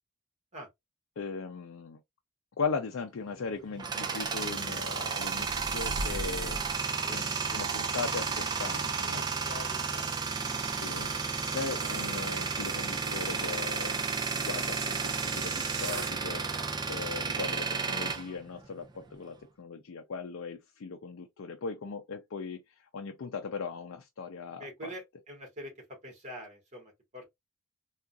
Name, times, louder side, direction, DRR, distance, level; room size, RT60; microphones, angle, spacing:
voice 1, 1.2-2.0 2.6-6.7 7.0-9.2 10.6-11.1 11.5-14.0 14.3-16.5 16.9-24.9, left 5 dB, 75° left, 0.5 m, -38 dB
Tools, 3.3-19.1, right 4 dB, 20° right, 0.4 m, -33 dB
sound 1, 4.2-16.2, right 6 dB, 55° right, 0.7 m, -40 dB
voice 2, 9.0-10.3 16.5-16.7 24.6-27.3, equal, 35° right, 1.5 m, -45 dB
3.6 x 2.4 x 2.3 m
head